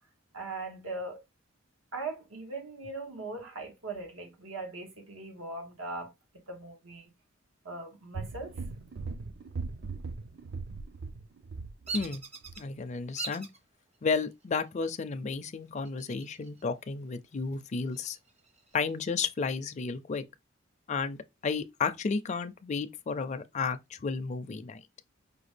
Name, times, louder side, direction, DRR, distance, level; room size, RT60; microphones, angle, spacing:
voice 1, 0.3-1.2 1.9-6.1 6.5-7.1 7.6-8.5, right 3 dB, 85° right, 1.3 m, -40 dB
sound 1, 8.1-12.2 12.4-12.6, right 4 dB, 55° right, 0.4 m, -39 dB
Bird vocalization bird call bird song, 11.9-12.6 13.2-13.6 14.2-14.7 15.8-16.6 17.0-17.1 17.5-18.9, right 4 dB, 35° right, 0.7 m, -41 dB
voice 2, 12.6-13.5 14.0-18.2 18.7-20.2 20.9-24.8, left 5 dB, 35° left, 0.4 m, -32 dB
4.9 x 2.3 x 3.2 m
head